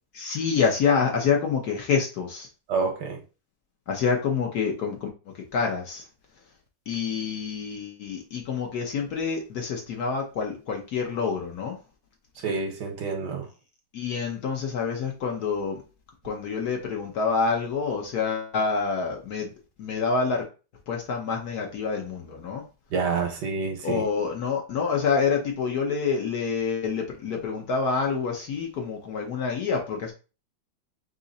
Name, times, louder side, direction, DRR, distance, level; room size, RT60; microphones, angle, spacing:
voice 1, 0.1-2.5 3.9-5.1 5.5-6.0 6.9-11.8 13.9-15.8 16.2-19.5 19.8-20.4 20.9-22.6 23.8-30.1, left 5 dB, 60° left, 1 dB, 1.2 m, -27 dB
voice 2, 2.7-3.2 12.4-13.5 22.9-24.0, right 4 dB, 65° right, 3 dB, 1.4 m, -28 dB
3.8 x 3.0 x 4.0 m, 0.33 s
omnidirectional pair, 2.1 m